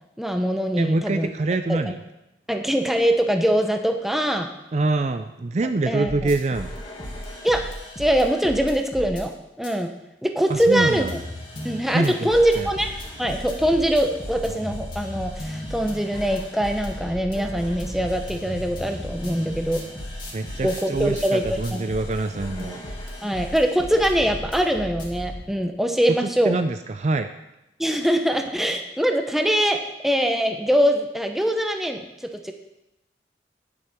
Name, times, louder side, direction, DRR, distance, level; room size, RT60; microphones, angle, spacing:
voice 1, 0.2-1.3 1.7-1.9 2.5-4.5 5.9-6.3 7.4-7.7 8.0-9.9 10.2-11.2 11.6-12.9 13.2-19.8 20.6-21.8 22.5-22.7 23.2-26.6 27.8-32.5, equal, ahead, 5 dB, 0.8 m, -23 dB
voice 2, 0.8-2.0 4.7-6.7 10.5-11.1 11.9-12.3 12.6-12.7 20.3-22.8 26.2-27.3, right 2 dB, 40° right, 9 dB, 0.4 m, -25 dB
sound 1, 6.0-9.2 9.6-9.7 10.4-25.4, left 1 dB, 25° left, 2.2 m, -35 dB
10.5 x 8.0 x 5.9 m, 0.90 s
head